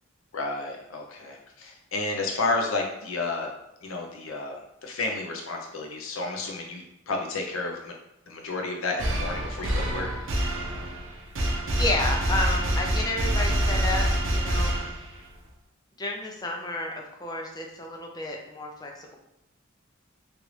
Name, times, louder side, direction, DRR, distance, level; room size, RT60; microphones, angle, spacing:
voice 1, 0.3-3.5 3.8-7.9 8.3-10.1 14.5-14.9, left 3 dB, 75° left, 1 dB, 0.7 m, -31 dB
sound 1, 9.0-15.3, right 1 dB, 65° right, 0.6 m, -26 dB
voice 2, 11.7-14.8 16.0-19.2, left 2 dB, 20° left, 0 dB, 0.5 m, -31 dB
3.2 x 2.5 x 3.1 m, 0.87 s
head